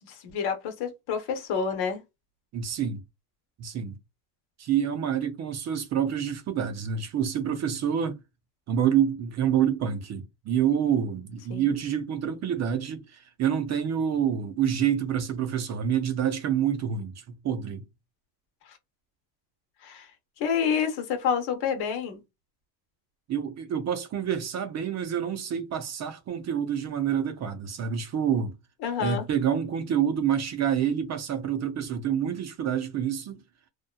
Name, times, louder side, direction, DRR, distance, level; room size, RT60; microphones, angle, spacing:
voice 1, 0.1-2.0 11.5-11.6 19.8-20.1 20.4-22.2 28.8-29.2, left 7 dB, 65° left, 1.0 m, -28 dB
voice 2, 2.5-3.0 3.6-4.0 4.6-8.2 8.7-17.9 23.3-28.6 29.0-33.4, right 8 dB, 40° right, 0.6 m, -27 dB
2.8 x 2.3 x 2.2 m
cardioid pair, 115°, 41 cm